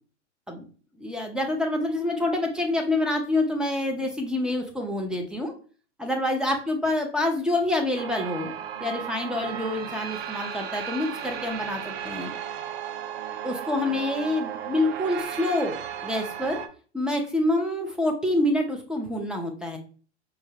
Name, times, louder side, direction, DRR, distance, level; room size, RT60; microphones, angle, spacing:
voice 1, 1.0-5.5 6.0-8.5 8.8-12.3 13.4-16.6 16.9-19.8, left 1 dB, ahead, 3 dB, 0.4 m, -27 dB
sound 1, 8.0-16.7, right 9 dB, 55° right, 0.6 m, -35 dB
4.6 x 2.1 x 3.2 m, 0.40 s
hypercardioid pair, 105°, 35 cm